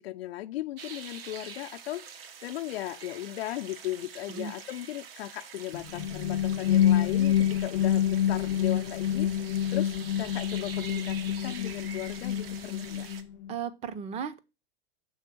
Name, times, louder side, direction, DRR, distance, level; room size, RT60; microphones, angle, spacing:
voice 1, 0.0-9.3 9.7-13.1, left 15 dB, 85° left, 0.6 m, -37 dB
sound 1, 0.8-13.2, right 7 dB, 70° right, 1.2 m, -45 dB
sound 2, 5.7-13.5, left 10 dB, 25° left, 0.4 m, -27 dB
voice 2, 13.5-14.4, right 7 dB, 20° right, 0.6 m, -35 dB
7.0 x 3.4 x 5.9 m
supercardioid pair, 145°, 30 cm